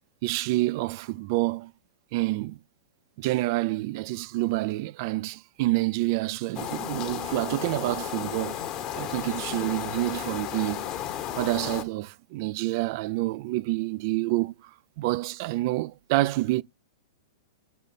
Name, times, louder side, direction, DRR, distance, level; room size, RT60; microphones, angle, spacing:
voice 1, 0.2-1.7 2.1-2.6 3.2-8.6 9.0-10.9 11.4-14.5 15.0-16.6, right 19 dB, 50° right, 0.4 m, -28 dB
sound 1, 6.5-11.8, left 10 dB, 35° left, 1.0 m, -34 dB
5.3 x 4.2 x 5.1 m
hypercardioid pair, 130°, 2 cm